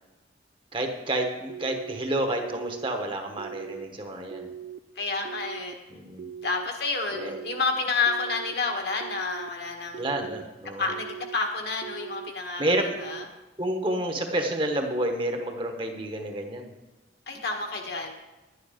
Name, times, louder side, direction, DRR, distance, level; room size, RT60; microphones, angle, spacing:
voice 1, 0.7-4.5 5.9-6.3 7.2-7.4 10.0-10.9 12.6-12.9 13.6-16.7, right 1 dB, 30° right, 4 dB, 1.1 m, -29 dB
sound 1, 1.5-2.0 2.4-2.9 3.4-3.8 4.3-4.8 5.2-5.7 6.2-6.7 7.1-7.6 8.1-8.5 9.0-9.5 9.9-10.4 10.9-11.4 11.8-12.3 12.8-13.3 13.7-14.2, right 8 dB, 55° right, 0.4 m, -40 dB
voice 2, 4.9-5.8 6.4-10.1 10.8-13.3 17.3-18.1, left 4 dB, 60° left, 2 dB, 1.6 m, -29 dB
11.0 x 9.7 x 5.1 m, 1.1 s
head